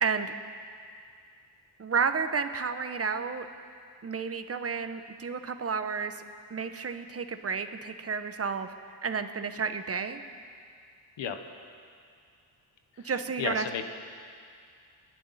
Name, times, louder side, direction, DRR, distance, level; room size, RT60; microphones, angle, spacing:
voice 1, 0.0-0.3 1.8-3.5 4.0-6.2 6.5-8.7 9.0-10.2 13.0-13.7, right 5 dB, 35° right, 8 dB, 1.1 m, -31 dB
voice 2, 13.4-13.9, left 7 dB, 85° left, 7 dB, 1.4 m, -32 dB
30.0 x 11.0 x 4.2 m, 2.2 s
cardioid pair, 90°, 43 cm